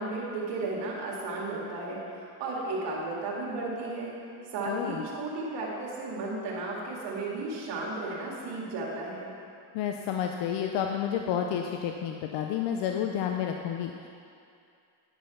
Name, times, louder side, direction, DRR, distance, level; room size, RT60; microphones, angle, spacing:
voice 1, 0.0-4.1 4.5-9.3, right 2 dB, 80° right, -4 dB, 2.2 m, -34 dB
voice 2, 4.7-5.0 9.7-14.1, left 9 dB, 80° left, 3 dB, 0.7 m, -30 dB
10.5 x 5.5 x 5.7 m, 2.4 s
cardioid pair, 80°, 42 cm